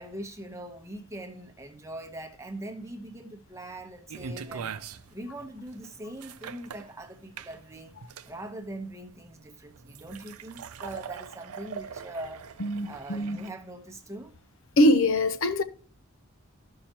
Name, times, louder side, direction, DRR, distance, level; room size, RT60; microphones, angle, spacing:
voice 1, 0.0-4.8 5.1-7.9 8.3-12.4 12.8-14.3, right 1 dB, 15° right, 0.9 m, -41 dB
sound 1, 4.1-13.5, right 6 dB, 85° right, 0.5 m, -42 dB
voice 2, 12.6-13.4 14.8-15.6, left 1 dB, 60° left, 0.6 m, -23 dB
13.0 x 5.6 x 2.8 m
head